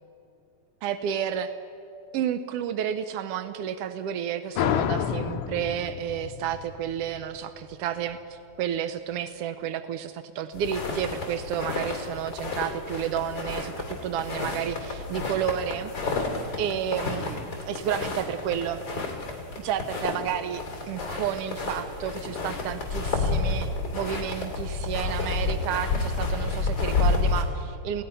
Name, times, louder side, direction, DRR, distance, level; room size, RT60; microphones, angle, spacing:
voice 1, 0.8-1.5 2.1-15.9 16.6-18.8 19.6-28.0, right 9 dB, 80° right, 11 dB, 1.4 m, -31 dB
sound 1, 4.5-7.8, left 8 dB, 80° left, 1.2 m, -29 dB
sound 2, 10.5-27.4, left 3 dB, 40° left, 3.5 m, -30 dB
28.5 x 18.0 x 5.6 m, 2.8 s
omnidirectional pair, 3.4 m